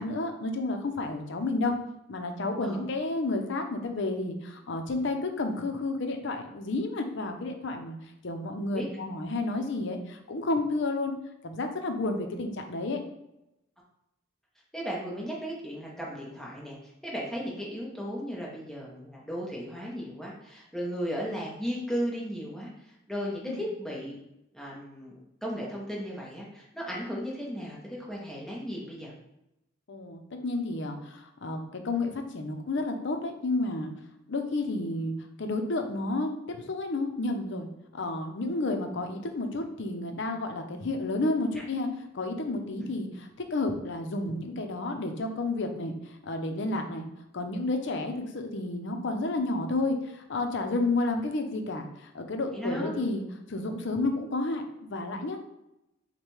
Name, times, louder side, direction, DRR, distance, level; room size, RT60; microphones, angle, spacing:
voice 1, 0.0-1.7 2.1-8.0 8.2-11.1 11.4-13.0 23.5-23.6 29.9-33.9 34.3-35.1 35.4-37.7 37.9-41.9 42.1-47.1 47.3-53.2 53.5-55.4, left 2 dB, 65° left, 5 dB, 0.6 m, -31 dB
voice 2, 14.7-16.8 17.0-24.2 24.5-29.1 42.8-42.9 52.5-53.0, equal, ahead, -4 dB, 0.8 m, -35 dB
6.4 x 2.2 x 3.1 m, 0.88 s
head